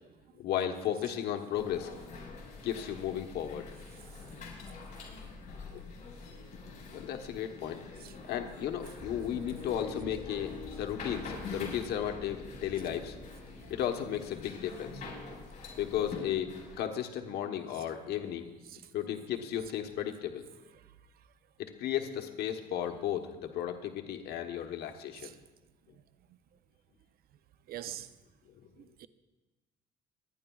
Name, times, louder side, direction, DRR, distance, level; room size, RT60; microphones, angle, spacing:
voice 1, 0.4-1.9 2.6-3.7 5.7-5.9 6.9-7.8 8.3-13.2 13.7-15.0 15.8-16.5 16.8-18.5 18.9-20.4 21.6-25.3 28.5-28.7, left 10 dB, 75° left, 1.0 m, -34 dB
sound 1, 1.5-16.8, left 3 dB, 50° left, 4.5 m, -46 dB
sound 2, 9.0-14.3, left 3 dB, ahead, 1.7 m, -47 dB
voice 2, 17.7-18.1 18.7-18.9 20.8-20.9 25.2-25.4 27.7-28.1 28.8-29.1, right 12 dB, 65° right, 0.6 m, -45 dB
26.0 x 10.0 x 2.3 m
cardioid pair, 110°, 17 cm